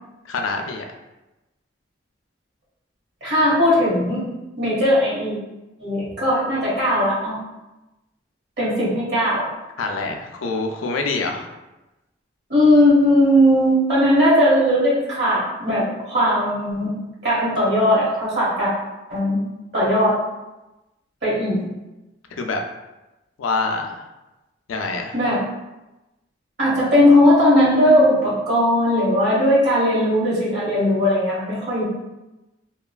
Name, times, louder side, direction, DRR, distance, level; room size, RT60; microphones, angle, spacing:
voice 1, 0.3-0.8 9.8-11.5 22.4-22.6 23.4-24.0 24.7-25.1, left 3 dB, 90° left, 3 dB, 0.4 m, -25 dB
voice 2, 3.2-4.2 4.6-5.4 5.8-7.4 8.6-9.4 12.5-16.9 17.2-18.7 19.1-19.4 19.7-20.1 21.2-21.6 25.1-25.4 26.6-31.8, left 1 dB, 55° right, -8 dB, 1.2 m, -18 dB
3.0 x 2.3 x 2.3 m, 1.0 s
head